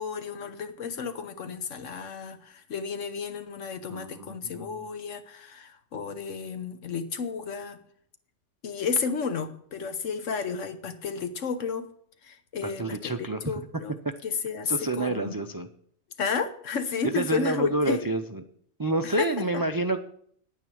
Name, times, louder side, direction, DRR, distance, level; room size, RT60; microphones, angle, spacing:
voice 1, 0.0-7.8 8.6-11.9 12.2-13.9 14.2-15.4 16.2-18.1 19.2-19.6, left 5 dB, 90° left, 9 dB, 1.4 m, -32 dB
voice 2, 3.9-4.7 12.6-13.4 14.7-15.7 17.1-18.4 18.8-20.0, right 2 dB, 35° right, 7 dB, 0.3 m, -28 dB
9.2 x 9.2 x 6.3 m, 0.64 s
omnidirectional pair, 1.3 m